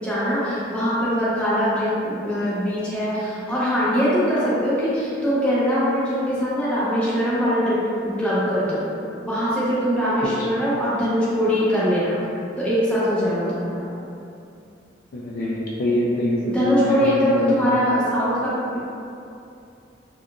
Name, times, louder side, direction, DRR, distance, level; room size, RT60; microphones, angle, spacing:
voice 1, 0.0-8.8 9.2-12.1 12.6-13.9 16.4-18.8, equal, 5° left, -10 dB, 0.8 m, -22 dB
voice 2, 15.1-17.6, left 1 dB, 50° left, -4 dB, 0.3 m, -24 dB
3.6 x 2.4 x 2.2 m, 2.6 s
head